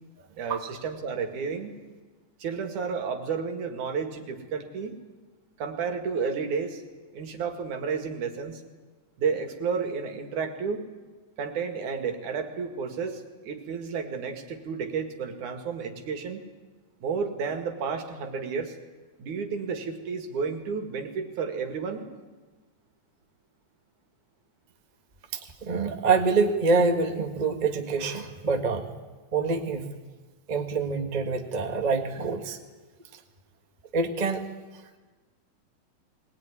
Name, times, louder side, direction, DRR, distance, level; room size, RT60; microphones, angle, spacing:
voice 1, 0.3-1.8 2.4-5.0 5.6-6.8 7.1-8.6 9.2-10.8 11.4-16.4 17.0-18.7 19.2-22.1, right 5 dB, 70° right, 5 dB, 3.4 m, -31 dB
voice 2, 25.3-28.8 29.3-29.9 30.5-32.6 33.9-34.4, right 4 dB, 25° right, 4 dB, 1.0 m, -26 dB
21.0 x 20.0 x 9.8 m, 1.3 s
omnidirectional pair, 3.6 m